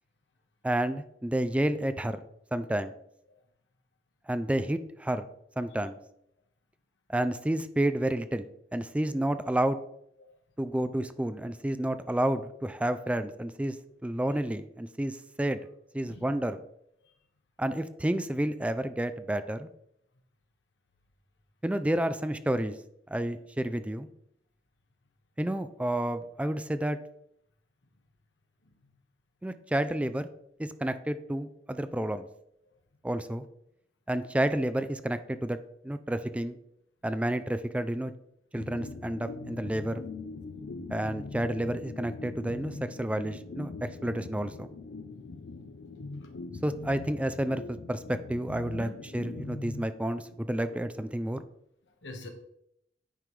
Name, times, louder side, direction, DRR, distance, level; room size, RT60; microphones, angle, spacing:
voice 1, 0.6-2.2 2.5-2.9 4.3-5.3 5.6-6.0 7.1-8.5 8.7-9.8 10.6-13.8 14.0-15.6 15.9-16.6 17.6-19.7 21.6-22.8 23.1-24.1 25.4-27.0 29.4-30.3 30.6-32.3 33.0-33.4 34.1-35.6 35.8-36.6 37.0-38.1 38.5-40.0 40.9-44.7 46.6-51.4, right 1 dB, 5° right, 11 dB, 0.3 m, -30 dB
voice 2, 16.0-16.4 17.0-17.1 28.6-28.9 32.6-32.7 35.3-35.4 38.6-38.7 46.1-46.3 48.7-49.0 51.8-52.3, left 2 dB, 85° left, 4 dB, 1.2 m, -47 dB
sound 1, 38.6-50.4, left 3 dB, 70° left, 0.5 m, -42 dB
9.1 x 5.3 x 3.2 m, 0.74 s
head